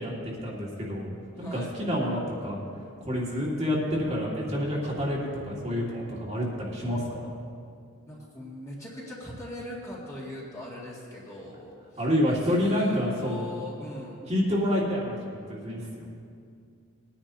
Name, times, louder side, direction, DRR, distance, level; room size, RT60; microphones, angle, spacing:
voice 1, 0.0-2.6 3.0-7.3 12.0-13.5 14.3-16.1, equal, 30° right, -5 dB, 2.0 m, -28 dB
voice 2, 1.4-1.7 8.1-14.3, left 1 dB, 15° left, -6 dB, 2.1 m, -41 dB
20.5 x 9.9 x 2.8 m, 2.3 s
head